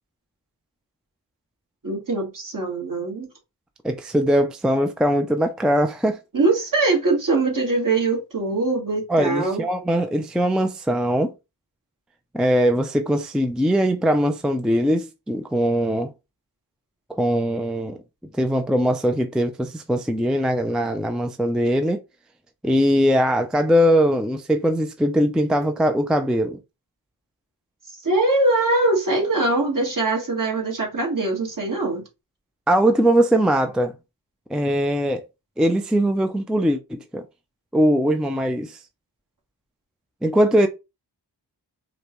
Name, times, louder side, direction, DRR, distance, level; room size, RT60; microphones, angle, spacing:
voice 1, 1.8-3.3 6.3-9.6 28.0-32.0, right 2 dB, 50° right, 1.6 m, -22 dB
voice 2, 3.8-6.2 9.1-11.3 12.3-16.1 17.1-18.0 18.3-22.0 22.6-26.6 32.7-33.9 34.5-35.2 35.6-37.2 37.7-38.8 40.2-40.7, equal, ahead, 0.4 m, -21 dB
4.9 x 2.2 x 3.0 m
wide cardioid pair, 70°, 42 cm